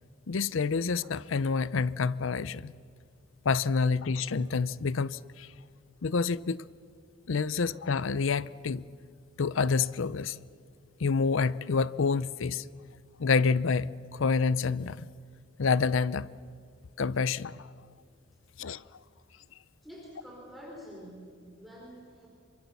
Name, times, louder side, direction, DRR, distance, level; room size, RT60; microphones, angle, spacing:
voice 1, 0.3-2.7 3.4-5.5 6.0-6.6 7.3-8.9 9.4-10.4 11.0-12.6 13.2-15.1 15.6-16.3 17.0-17.7 18.6-18.8, left 5 dB, 75° left, 0.6 m, -28 dB
voice 2, 19.8-22.3, equal, ahead, 4.4 m, -47 dB
27.0 x 23.5 x 7.1 m
head